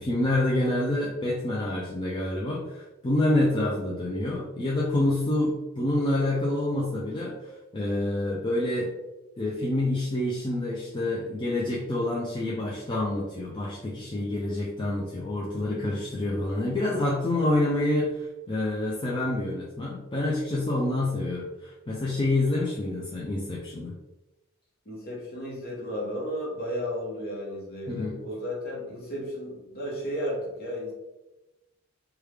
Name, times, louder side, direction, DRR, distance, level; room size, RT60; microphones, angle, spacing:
voice 1, 0.0-7.3 7.7-8.9 9.4-23.9 27.9-28.2, left 1 dB, 25° left, -5 dB, 0.4 m, -27 dB
voice 2, 24.8-30.9, equal, 45° left, -3 dB, 1.1 m, -33 dB
3.3 x 2.3 x 3.3 m, 1.0 s
head